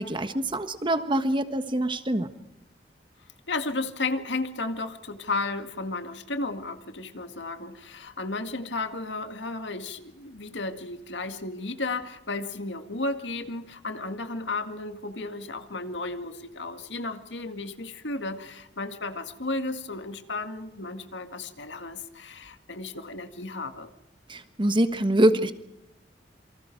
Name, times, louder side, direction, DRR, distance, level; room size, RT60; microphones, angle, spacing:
voice 1, 0.0-2.3 24.3-25.5, right 1 dB, 30° right, 9 dB, 1.5 m, -24 dB
voice 2, 3.5-23.9, left 3 dB, 90° left, 8 dB, 2.0 m, -33 dB
28.0 x 24.5 x 4.6 m, 0.87 s
head